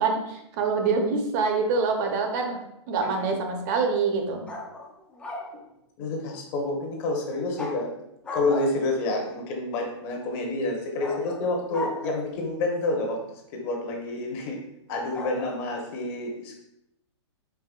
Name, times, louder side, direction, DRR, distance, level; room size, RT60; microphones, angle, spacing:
voice 1, 0.0-2.6 2.9-4.4, right 4 dB, 40° right, 3 dB, 0.7 m, -25 dB
voice 2, 3.0-3.3 6.0-7.9 8.3-13.2 13.5-14.6 14.9-16.6, left 2 dB, 35° left, 1 dB, 0.9 m, -28 dB
sound 1, 4.5-5.5 7.5-7.8 8.2-9.0 11.0-12.4 15.1-15.5, left 2 dB, 5° left, 0.4 m, -36 dB
4.7 x 4.3 x 2.4 m, 0.82 s
hypercardioid pair, 150°, 15 cm